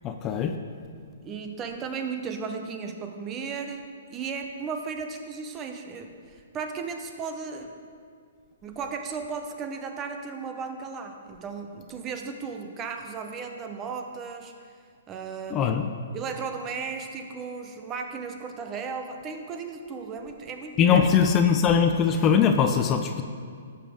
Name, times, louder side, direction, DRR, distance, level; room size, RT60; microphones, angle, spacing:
voice 1, 0.0-0.5 15.5-15.9 20.8-23.2, left 7 dB, 25° left, 6 dB, 0.5 m, -21 dB
voice 2, 1.2-7.7 8.6-14.5 15.1-15.8 16.1-21.1, right 5 dB, 25° right, 5 dB, 0.8 m, -35 dB
12.0 x 7.1 x 3.6 m, 2.2 s
hypercardioid pair, 135°, 0 cm